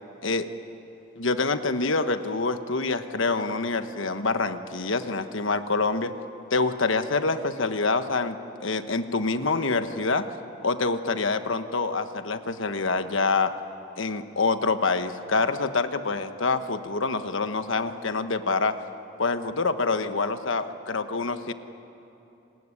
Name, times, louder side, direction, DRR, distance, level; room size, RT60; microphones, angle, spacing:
voice 1, 1.2-6.1 6.5-10.3 10.6-13.5 14.0-18.8 19.2-21.5, left 3 dB, 70° left, 9 dB, 1.3 m, -26 dB
27.5 x 20.0 x 9.8 m, 2.9 s
head